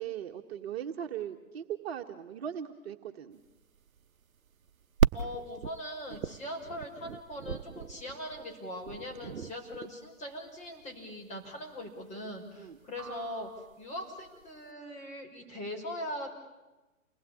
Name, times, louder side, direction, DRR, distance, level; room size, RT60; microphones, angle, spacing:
voice 1, 0.0-3.4 12.6-12.8, right 9 dB, 45° right, 4 dB, 1.7 m, -39 dB
sound 1, 3.5-14.6, right 7 dB, 75° right, 1.0 m, -35 dB
voice 2, 5.1-13.5 13.8-16.3, equal, 15° left, 2 dB, 5.7 m, -41 dB
29.5 x 20.0 x 8.7 m, 1.1 s
figure-of-eight pair, 130°, 42 cm